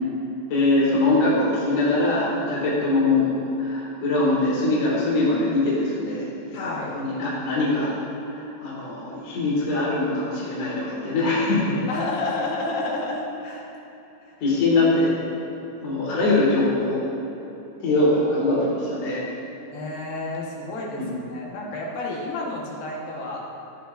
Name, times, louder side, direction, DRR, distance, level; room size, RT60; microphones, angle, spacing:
voice 1, 0.5-7.9 8.3-11.8 14.4-15.2 15.8-17.0 17.8-19.2 21.0-21.1, left 2 dB, 50° left, -6 dB, 2.4 m, -22 dB
voice 2, 6.5-6.9 11.9-13.7 14.2-14.3 19.7-21.0 21.3-23.4, left 2 dB, 80° left, -3 dB, 3.2 m, -30 dB
12.5 x 9.0 x 2.5 m, 3.0 s
omnidirectional pair, 4.2 m